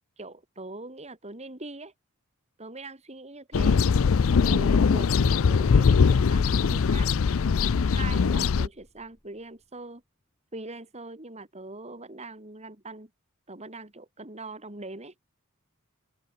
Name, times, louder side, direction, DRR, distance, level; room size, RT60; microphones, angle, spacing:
voice 1, 0.0-1.9 2.6-4.0 4.4-7.1 7.8-10.0 10.5-13.1 13.5-15.1, right 2 dB, 30° right, 3.6 m, -41 dB
sound 1, 3.5-8.7, left 5 dB, 70° left, 0.5 m, -21 dB
sound 2, 7.1-9.8, equal, 15° left, 2.2 m, -53 dB
open air
head